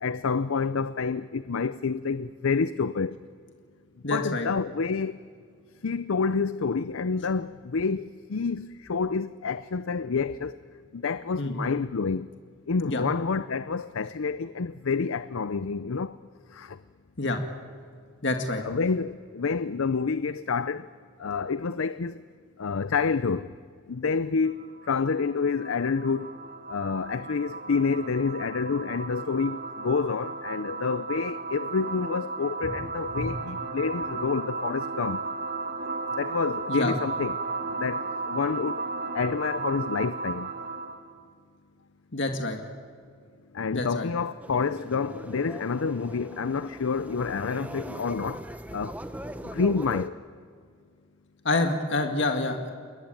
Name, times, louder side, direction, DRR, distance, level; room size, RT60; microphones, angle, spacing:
voice 1, 0.0-3.2 4.1-5.2 5.8-10.6 10.9-12.3 12.7-16.2 16.5-16.8 18.6-20.9 21.2-22.2 22.6-23.5 23.9-26.3 26.7-35.2 36.2-37.3 37.8-38.8 39.1-40.5 43.5-48.4 48.7-49.0 49.5-50.2, left 5 dB, 80° left, 0.6 m, -28 dB
voice 2, 4.0-4.5 11.4-11.5 12.8-13.0 17.2-17.4 18.2-18.6 33.2-33.3 36.7-37.0 42.1-42.6 43.7-44.1 51.4-52.7, left 2 dB, 60° left, 2.0 m, -27 dB
sound 1, 24.4-41.1, right 4 dB, 50° right, 1.7 m, -35 dB
sound 2, 44.4-50.1, right 1 dB, 5° right, 0.9 m, -41 dB
29.5 x 20.5 x 9.1 m
head